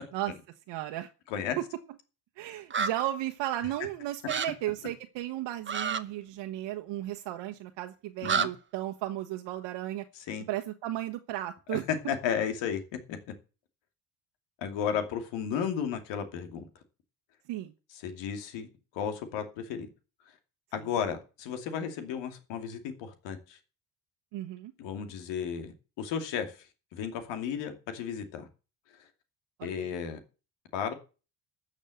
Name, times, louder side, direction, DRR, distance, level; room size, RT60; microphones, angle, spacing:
voice 1, 0.7-1.1 2.4-10.0 10.5-11.9 17.5-17.7 24.3-24.7 29.8-29.9, right 14 dB, 75° right, 5 dB, 1.2 m, -34 dB
sound 1, 2.7-2.9 4.3-4.5 5.7-6.0 8.2-8.5, right 6 dB, 25° right, 1.0 m, -28 dB
voice 2, 10.2-10.5 11.7-11.8 12.1-12.8 13.1-13.2 14.6-16.6 18.0-18.7 18.9-19.9 20.7-23.6 24.8-26.7 26.9-28.5 29.6-30.2 30.7-30.9, left 7 dB, 85° left, 7 dB, 2.7 m, -34 dB
13.0 x 6.5 x 7.8 m, 0.34 s
cardioid pair, 100°, 43 cm